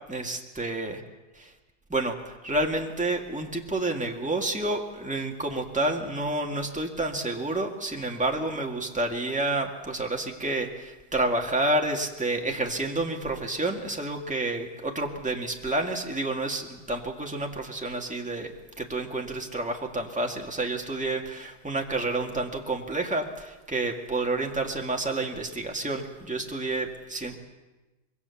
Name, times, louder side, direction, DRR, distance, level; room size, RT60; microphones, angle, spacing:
voice 1, 0.1-1.0 1.3-1.5 1.9-2.1 2.4-27.3, right 2 dB, 5° right, 1 dB, 2.0 m, -29 dB
25.5 x 22.0 x 7.2 m, 1.1 s
omnidirectional pair, 1.7 m